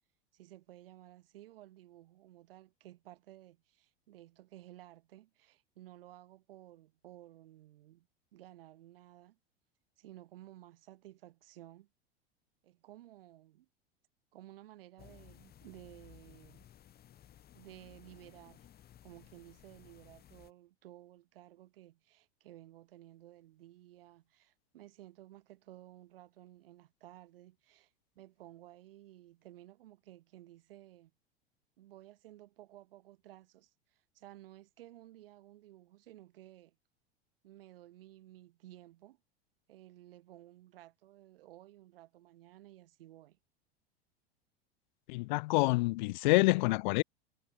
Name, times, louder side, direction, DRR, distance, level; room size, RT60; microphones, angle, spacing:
voice 1, 0.3-8.1 8.3-9.4 10.0-11.9 12.6-13.7 14.3-16.7 17.5-18.7 19.0-31.1 31.8-36.8 37.4-39.2 39.7-43.4, right 14 dB, 60° right, 7.9 m, -55 dB
sound 1, 15.0-20.5, left 11 dB, 30° left, 3.0 m, -58 dB
voice 2, 45.1-47.0, left 23 dB, 45° left, 0.5 m, -27 dB
figure-of-eight pair, 85°, 32 cm